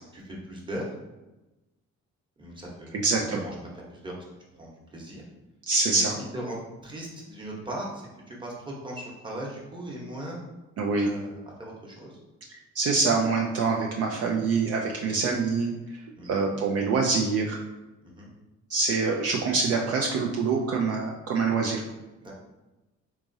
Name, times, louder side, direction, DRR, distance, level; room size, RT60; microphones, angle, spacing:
voice 1, 0.2-0.9 2.4-4.1 4.6-5.2 5.9-6.6 6.8-10.4 11.0-12.2 15.0-15.3 16.2-16.4 18.0-18.3 22.2-22.3, right 1 dB, 15° right, -3 dB, 1.0 m, -38 dB
voice 2, 2.9-3.4 5.7-6.2 10.8-11.1 12.7-17.6 18.7-21.8, right 4 dB, 55° right, 0 dB, 0.4 m, -25 dB
3.6 x 2.9 x 2.6 m, 1.1 s
cardioid pair, 90°, 30 cm